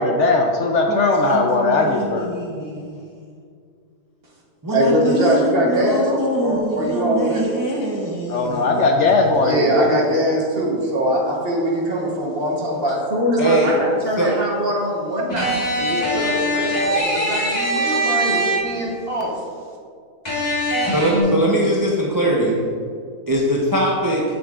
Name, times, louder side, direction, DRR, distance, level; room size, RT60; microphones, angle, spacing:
voice 1, 0.0-2.3 8.3-9.9, left 3 dB, 65° left, 2 dB, 0.8 m, -18 dB
voice 2, 0.9-3.1 4.6-9.0 13.4-13.7 14.2-14.3 20.8-22.5 23.3-24.2, right 1 dB, 20° right, -4 dB, 0.5 m, -22 dB
voice 3, 4.7-6.1 6.4-7.6 9.4-19.4, equal, 45° right, -2 dB, 1.2 m, -22 dB
sound 1, 15.3-19.0 20.3-21.2, equal, 30° left, 1.7 m, -22 dB
8.2 x 7.4 x 2.4 m, 2.2 s
omnidirectional pair, 1.5 m